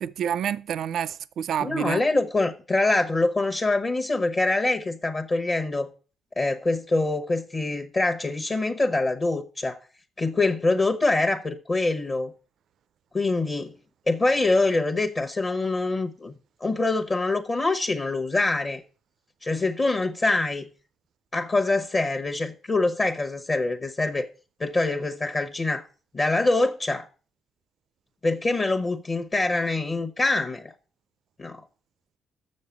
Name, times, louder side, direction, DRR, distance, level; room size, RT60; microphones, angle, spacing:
voice 1, 0.0-2.0, right 9 dB, 70° right, 0.4 m, -28 dB
voice 2, 1.6-5.9 6.4-9.8 10.2-12.3 13.1-13.7 14.1-16.3 16.6-18.8 19.4-20.6 21.3-24.3 24.6-25.8 26.1-27.1 28.2-30.7 31.4-31.6, left 2 dB, 30° left, 0.9 m, -24 dB
7.1 x 6.4 x 7.0 m
cardioid pair, 90°, 0 cm